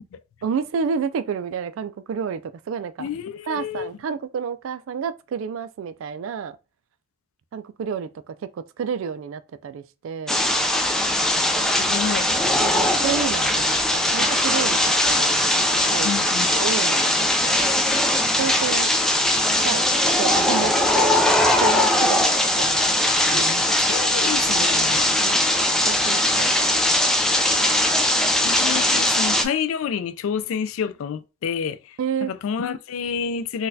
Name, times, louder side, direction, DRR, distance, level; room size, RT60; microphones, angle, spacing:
voice 1, 0.4-2.4 2.7-3.1 3.5-6.6 7.5-10.4 12.6-16.1 16.6-17.1 17.4-17.6 18.3-18.9 19.6-19.8 20.2-21.1 21.6-22.2 22.6-22.8 23.3-23.5 25.2-25.4 25.9-26.8 32.0-32.3, right 6 dB, 80° right, 0.3 m, -30 dB
voice 2, 3.0-3.9 11.8-12.3 16.0-16.5 23.3-25.1 28.4-32.0 32.2-33.7, left 7 dB, 85° left, 0.3 m, -29 dB
sound 1, 10.3-29.5, left 1 dB, ahead, 0.3 m, -20 dB
3.9 x 2.3 x 2.6 m
head